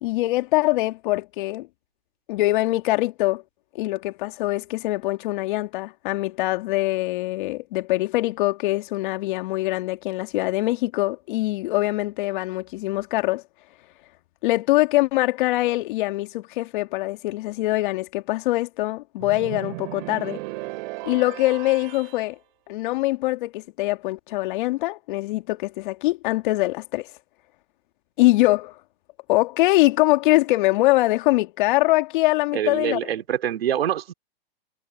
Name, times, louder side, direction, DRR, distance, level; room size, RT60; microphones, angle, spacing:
voice 1, 0.0-1.7 2.3-3.4 3.7-13.4 14.4-20.4 21.0-22.4 22.7-27.1 28.2-28.8 29.3-33.0, left 19 dB, 55° left, 2.1 m, -23 dB
sound 1, 19.2-22.2, right 23 dB, 50° right, 2.9 m, -35 dB
voice 2, 32.5-34.1, right 10 dB, 75° right, 2.9 m, -25 dB
hypercardioid pair, 115°, 30 cm